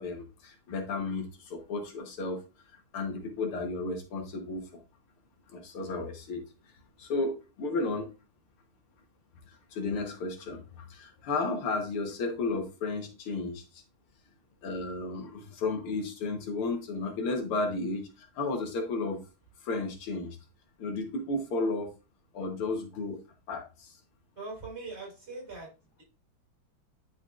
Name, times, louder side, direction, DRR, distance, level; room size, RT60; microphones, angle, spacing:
voice 1, 0.0-2.4 2.9-4.8 5.5-6.4 7.0-8.1 9.5-13.8 14.6-19.2 19.6-20.4 20.8-21.9 22.3-23.2 23.5-23.9, left 3 dB, 90° left, 3 dB, 2.2 m, -33 dB
voice 2, 24.4-25.7, right 3 dB, 30° right, -3 dB, 4.1 m, -41 dB
10.5 x 4.0 x 2.5 m, 0.30 s
omnidirectional pair, 2.3 m